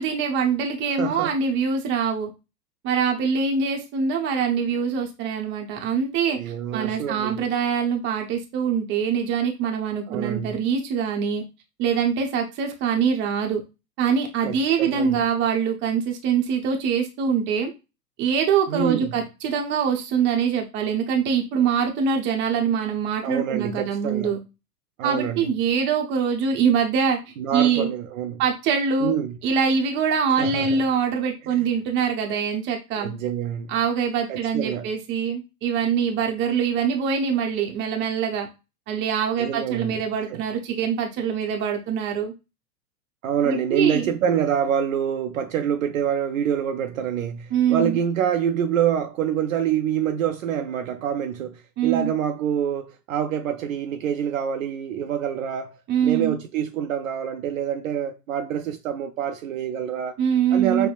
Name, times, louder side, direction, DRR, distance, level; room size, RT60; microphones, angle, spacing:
voice 1, 0.0-2.3 2.8-11.4 11.8-13.6 14.0-17.7 18.2-24.4 25.0-27.2 27.5-27.9 28.4-29.2 29.4-33.1 33.7-38.5 38.9-42.3 43.4-44.1 47.5-48.0 51.8-52.1 55.9-56.4 60.2-60.9, right 6 dB, 25° right, 0.7 m, -24 dB
voice 2, 1.0-1.3 6.3-7.4 10.1-10.6 14.4-15.2 18.7-19.2 23.2-24.3 25.0-25.5 27.4-28.4 29.0-29.4 30.4-30.8 31.6-31.7 33.0-33.7 34.3-34.9 39.4-40.0 40.3-40.4 43.2-60.1 60.5-60.9, right 9 dB, 55° right, 0.5 m, -26 dB
5.3 x 2.1 x 2.4 m
hypercardioid pair, 110°, 49 cm